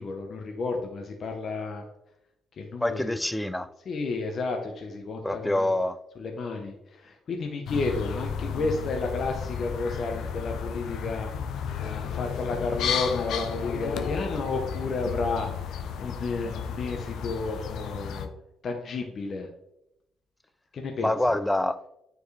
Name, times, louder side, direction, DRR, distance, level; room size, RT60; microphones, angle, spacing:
voice 1, 0.0-1.8 2.6-3.2 3.9-5.7 6.2-11.3 11.8-18.3 18.6-19.5 20.7-21.1, left 3 dB, 55° left, 0.9 m, -32 dB
voice 2, 2.8-3.7 5.2-6.0 21.0-21.8, left 1 dB, 10° left, 0.4 m, -26 dB
sound 1, 7.7-18.3, left 7 dB, 80° left, 0.6 m, -33 dB
9.4 x 4.6 x 3.3 m
cardioid pair, 90°, 0 cm